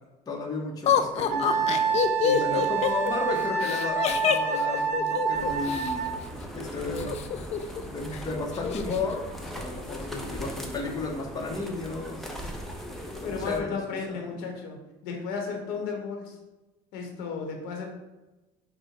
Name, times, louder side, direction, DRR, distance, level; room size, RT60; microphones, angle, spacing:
voice 1, 0.3-6.1 6.5-7.3 7.8-12.8 13.1-13.8 14.1-14.4, left 3 dB, 25° left, 0 dB, 0.8 m, -34 dB
Laughter, 0.9-5.9 7.0-7.8 8.1-8.2 8.5-9.0, left 8 dB, 45° left, 0.4 m, -26 dB
Wind instrument woodwind instrument, 1.3-6.2, right 5 dB, 55° right, 0.7 m, -27 dB
voice 2, 2.2-2.6 10.1-11.1 13.2-16.4 16.9-17.9, left 5 dB, 85° left, 1 dB, 1.0 m, -34 dB
sound 1, 5.3-13.6, equal, ahead, 0.7 m, -39 dB
5.5 x 2.2 x 4.2 m, 1.1 s
cardioid pair, 120°, 15 cm